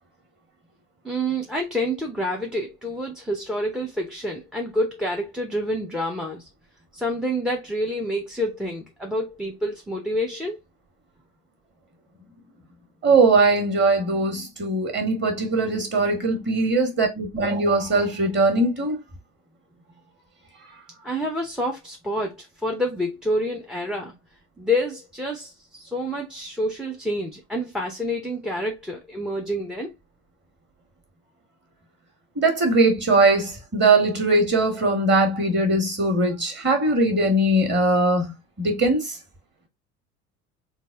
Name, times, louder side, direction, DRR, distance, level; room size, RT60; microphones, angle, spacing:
voice 1, 1.0-6.5 6.9-10.6 21.0-24.1 24.6-30.0, equal, ahead, 0.5 m, -28 dB
voice 2, 13.0-19.0 32.4-38.3 38.6-39.0, right 2 dB, 25° right, 1.4 m, -20 dB
4.0 x 2.1 x 3.4 m
figure-of-eight pair, 60°, 46 cm